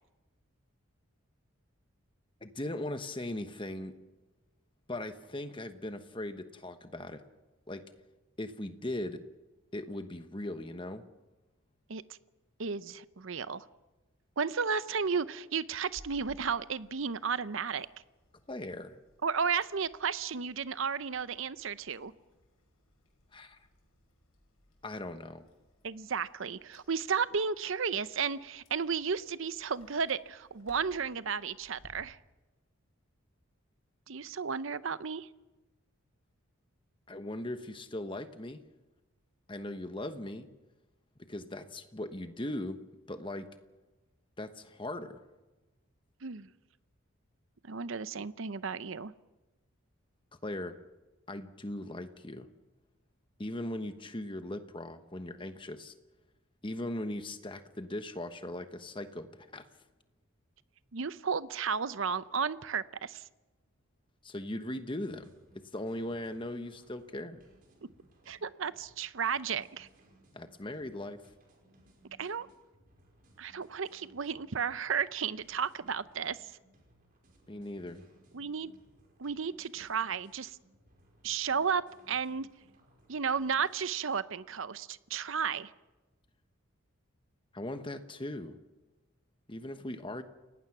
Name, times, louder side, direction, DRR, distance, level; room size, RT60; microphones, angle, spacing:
voice 1, 2.4-3.9 4.9-7.2 7.7-7.9 8.4-9.2 9.7-11.0 18.5-19.0 23.3-23.6 24.8-25.5 37.1-38.6 39.5-40.5 41.3-42.8 43.1-43.5 44.4-45.2 50.4-50.7 51.3-52.5 53.4-55.9 56.6-59.3 59.5-59.6 64.2-65.3 65.7-67.4 70.3-71.2 77.5-78.1 87.5-88.6 89.5-90.2, left 1 dB, 25° left, 9 dB, 1.2 m, -39 dB
voice 2, 12.6-13.6 14.4-17.9 19.2-22.1 25.8-32.2 34.1-35.3 46.2-46.5 47.7-49.1 60.9-63.2 68.3-69.9 72.2-72.5 73.4-76.5 78.3-78.7 79.2-80.6 81.2-82.5 83.1-85.7, right 6 dB, 60° right, 15 dB, 0.7 m, -33 dB
Chewing mastication, 15.8-31.9, left 1 dB, 80° left, 5.8 m, -62 dB
sound 1, 65.0-83.8, right 1 dB, 40° right, 5.1 m, -64 dB
29.5 x 18.5 x 6.0 m, 1.1 s
head